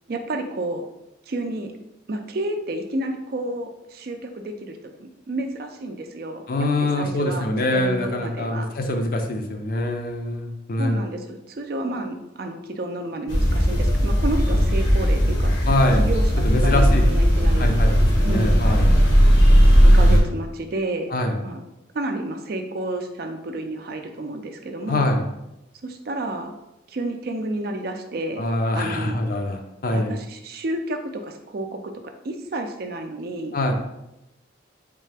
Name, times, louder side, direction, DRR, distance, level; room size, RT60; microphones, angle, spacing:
voice 1, 0.1-0.9 1.3-1.7 2.1-6.5 6.8-8.7 10.8-15.5 16.0-16.2 16.6-17.7 18.2-18.5 19.8-21.1 21.4-21.6 21.9-25.1 25.8-26.6 26.9-28.4 28.7-29.2 29.9-33.5, right 1 dB, 50° right, 5 dB, 0.4 m, -30 dB
voice 2, 6.5-11.0 15.7-16.1 16.4-17.0 17.6-17.9 18.2-18.9 21.1-21.4 24.9-25.3 28.4-30.1 33.5-33.7, left 1 dB, 45° left, 4 dB, 0.5 m, -24 dB
sound 1, 13.3-20.2, equal, 75° left, 1.0 m, -17 dB
3.7 x 3.2 x 3.3 m, 0.91 s
head